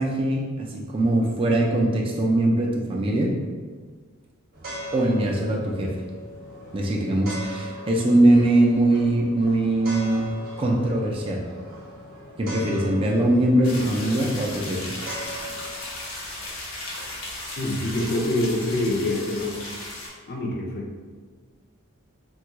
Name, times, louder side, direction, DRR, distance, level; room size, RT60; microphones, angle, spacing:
voice 1, 0.0-3.3 4.9-5.9 6.7-10.3 10.6-11.4 12.4-14.8, right 1 dB, 25° right, -1 dB, 0.4 m, -21 dB
sound 1, 4.5-15.7, equal, 45° right, 0.7 m, -39 dB
sound 2, 13.6-20.1, left 1 dB, 80° left, 0.9 m, -36 dB
voice 2, 17.6-19.6 20.3-20.9, left 1 dB, 45° left, -1 dB, 0.5 m, -25 dB
3.4 x 2.3 x 2.9 m, 1.5 s
head